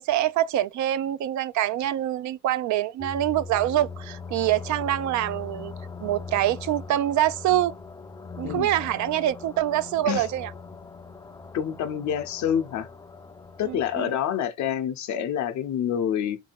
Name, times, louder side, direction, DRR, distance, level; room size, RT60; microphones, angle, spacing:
voice 1, 0.0-5.7 6.0-7.7 8.4-10.5 13.6-14.1, right 13 dB, 70° right, 0.4 m, -25 dB
sound 1, 3.0-14.1, left 4 dB, 15° left, 0.4 m, -40 dB
voice 2, 11.5-12.9 13.6-16.4, left 9 dB, 70° left, 0.7 m, -27 dB
2.7 x 2.7 x 4.3 m
cardioid pair, 90°, 30 cm